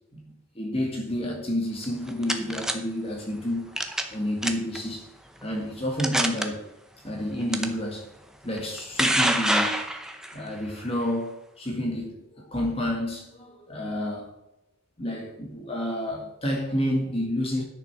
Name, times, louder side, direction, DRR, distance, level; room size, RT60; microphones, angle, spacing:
voice 1, 0.6-3.7 4.1-5.1 5.4-6.6 7.0-8.1 8.4-9.8 10.3-14.3 15.0-17.6, left 1 dB, 30° left, 2.0 m, -29 dB
sound 1, 1.8-2.7 3.8-4.1 4.4-4.8 5.4-5.5 6.0-6.5 7.5-7.7 8.6-10.3, right 1 dB, 5° right, 0.8 m, -25 dB
10.5 x 6.8 x 5.9 m
head